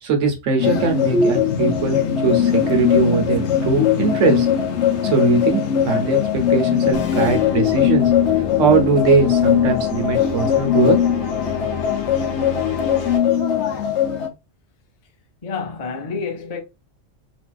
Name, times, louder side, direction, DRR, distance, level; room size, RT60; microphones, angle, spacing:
voice 1, 0.0-4.5 5.0-8.1 8.6-11.2, right 5 dB, 75° right, 1.3 m, -20 dB
sound 1, 0.6-14.3, left 9 dB, 70° left, 0.9 m, -20 dB
sound 2, 6.9-13.2, left 6 dB, 85° left, 1.2 m, -30 dB
voice 2, 15.4-16.6, left 5 dB, 40° left, 0.5 m, -28 dB
3.9 x 2.6 x 2.3 m
omnidirectional pair, 1.3 m